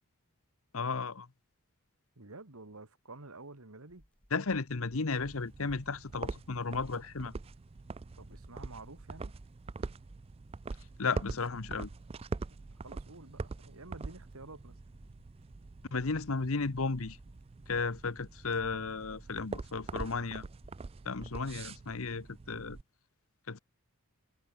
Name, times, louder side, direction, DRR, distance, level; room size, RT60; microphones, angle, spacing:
voice 1, 0.7-1.3 4.3-7.4 11.0-11.9 15.9-17.2 17.7-20.5 21.0-22.8 23.5-23.6, left 4 dB, 70° left, 1.0 m, -34 dB
voice 2, 2.2-4.0 8.2-9.3 12.8-14.8, right 2 dB, 75° right, 2.3 m, -50 dB
sound 1, 3.9-21.1, equal, 5° left, 7.2 m, -62 dB
sound 2, 5.2-22.8, right 3 dB, 25° right, 0.3 m, -44 dB
head